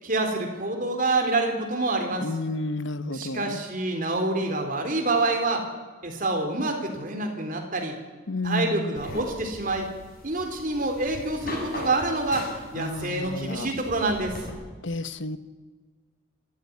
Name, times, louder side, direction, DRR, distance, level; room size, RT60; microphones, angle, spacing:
voice 1, 0.0-2.3 3.1-5.7 6.0-8.0 8.4-9.9 10.2-14.4, right 2 dB, 40° right, 4 dB, 3.9 m, -27 dB
voice 2, 2.2-3.6 8.3-8.9 12.8-13.7 14.8-15.4, left 2 dB, 65° left, 13 dB, 1.0 m, -31 dB
sound 1, 9.0-14.5, left 1 dB, 45° left, 7.8 m, -39 dB
24.5 x 13.5 x 9.6 m, 1.3 s
head